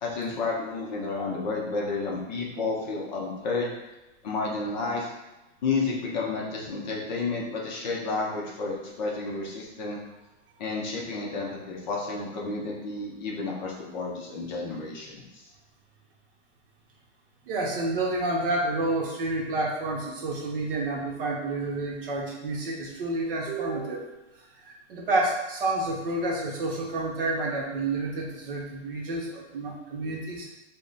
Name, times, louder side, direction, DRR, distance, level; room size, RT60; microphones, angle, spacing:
voice 1, 0.0-3.7 4.2-5.1 5.6-10.0 10.6-15.4, left 3 dB, 40° left, -2 dB, 0.6 m, -31 dB
voice 2, 17.5-24.2 24.6-30.5, right 2 dB, 50° right, -1 dB, 0.7 m, -29 dB
3.4 x 2.1 x 3.9 m, 1.0 s
supercardioid pair, 175°, 37 cm